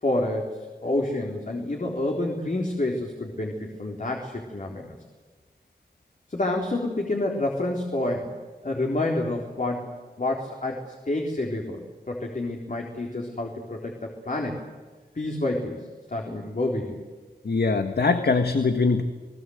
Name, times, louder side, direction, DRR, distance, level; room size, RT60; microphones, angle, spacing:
voice 1, 0.0-5.0 6.3-8.3 8.6-9.9 10.2-11.8 12.1-14.6 15.1-17.0, left 2 dB, 50° left, 0 dB, 4.0 m, -28 dB
voice 2, 17.4-19.0, left 4 dB, 75° left, 7 dB, 1.6 m, -22 dB
29.0 x 20.0 x 8.0 m, 1.3 s
wide cardioid pair, 65°, 17 cm